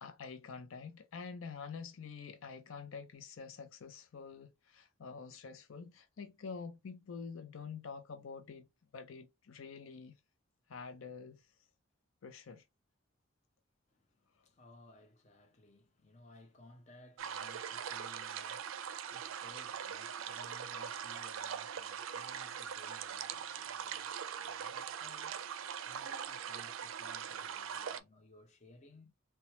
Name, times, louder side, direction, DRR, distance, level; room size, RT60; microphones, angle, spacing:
voice 1, 0.0-8.7 8.9-10.2 10.7-11.4 12.2-12.6, left 5 dB, 85° left, 0.5 m, -47 dB
voice 2, 13.9-25.5 25.8-29.1, left 2 dB, 35° left, 0.6 m, -60 dB
sound 1, 17.2-28.0, right 8 dB, 90° right, 0.4 m, -42 dB
3.0 x 2.2 x 2.7 m
head